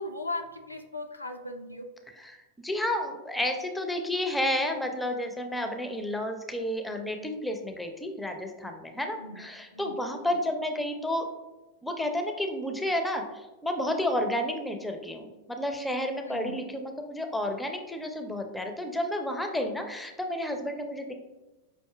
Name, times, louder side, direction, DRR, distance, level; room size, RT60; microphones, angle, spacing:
voice 1, 0.0-1.9 9.2-9.5 9.7-10.0 10.3-10.4 16.2-16.6 21.1-21.2, left 2 dB, 85° left, 5 dB, 0.3 m, -38 dB
voice 2, 2.2-11.3 11.8-21.1, left 1 dB, 5° left, 4 dB, 0.4 m, -31 dB
5.4 x 2.6 x 2.2 m, 1.1 s
figure-of-eight pair, 90°, 0 cm